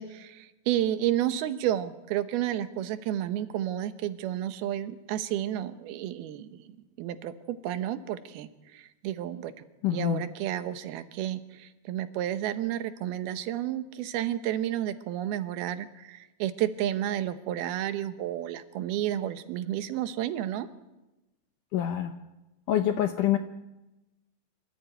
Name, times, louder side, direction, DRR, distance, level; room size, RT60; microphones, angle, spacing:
voice 1, 0.0-9.5 9.9-20.7, right 12 dB, 75° right, 11 dB, 2.9 m, -31 dB
voice 2, 9.8-10.2 21.7-22.1 22.7-23.4, left 11 dB, 75° left, 7 dB, 2.0 m, -25 dB
25.5 x 15.0 x 9.0 m, 1.0 s
omnidirectional pair, 4.6 m